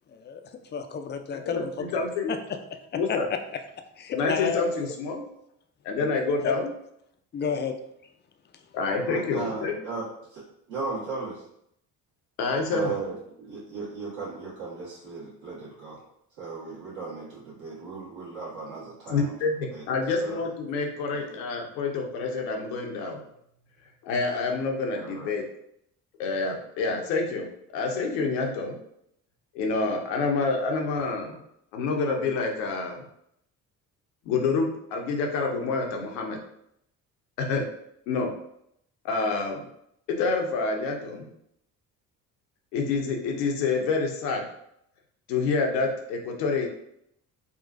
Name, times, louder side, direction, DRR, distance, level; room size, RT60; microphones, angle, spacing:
voice 1, 0.7-2.0 2.3-2.6 3.1-3.2 4.0-4.9 6.4-6.5 7.3-7.8, left 6 dB, 25° left, 0.3 m, -31 dB
voice 2, 1.4-2.3 2.9-3.3 4.1-5.2 5.8-6.7 8.7-9.7 12.4-13.0 19.1-23.2 24.0-25.4 26.2-27.5 27.7-28.7 29.5-31.4 31.7-33.0 34.2-36.4 37.4-37.6 38.1-38.3 39.0-39.6 40.1-41.3 42.7-44.5 45.3-46.7, left 4 dB, 80° left, 0.7 m, -27 dB
voice 3, 9.0-11.4 12.7-16.0 16.4-19.3 19.7-19.8 20.2-20.5 21.3-21.4 24.9-25.3, right 4 dB, 70° right, 1.5 m, -36 dB
3.8 x 2.4 x 2.5 m
hypercardioid pair, 45°, 48 cm